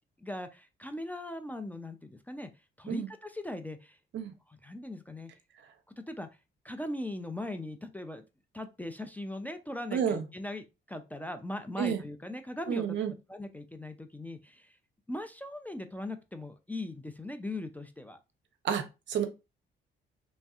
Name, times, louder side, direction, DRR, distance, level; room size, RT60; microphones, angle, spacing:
voice 1, 0.2-2.5 2.8-4.0 4.5-5.3 6.1-6.3 6.6-8.2 8.5-13.0 13.3-14.8 15.1-18.2, left 1 dB, 10° left, 7 dB, 0.3 m, -39 dB
voice 2, 9.9-10.2 11.8-12.0 12.7-13.1 18.6-19.3, right 8 dB, 65° right, 8 dB, 0.6 m, -30 dB
3.1 x 2.6 x 2.3 m, 0.27 s
cardioid pair, 90°, 20 cm